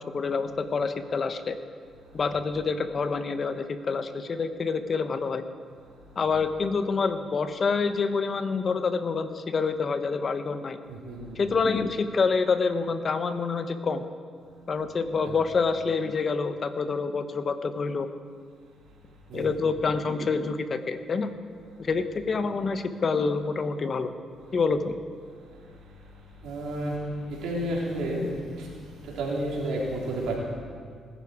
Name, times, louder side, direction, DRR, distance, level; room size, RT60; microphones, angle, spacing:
voice 1, 0.1-1.6 2.1-5.4 6.2-10.8 11.4-14.0 14.7-18.1 19.3-21.3 21.8-24.1 24.5-25.0, left 4 dB, 45° left, 10 dB, 0.9 m, -27 dB
voice 2, 26.4-26.9 27.4-28.2 29.2-30.4, right 1 dB, 85° right, -3 dB, 3.5 m, -30 dB
19.5 x 11.0 x 4.8 m, 2.1 s
cardioid pair, 90°, 0 cm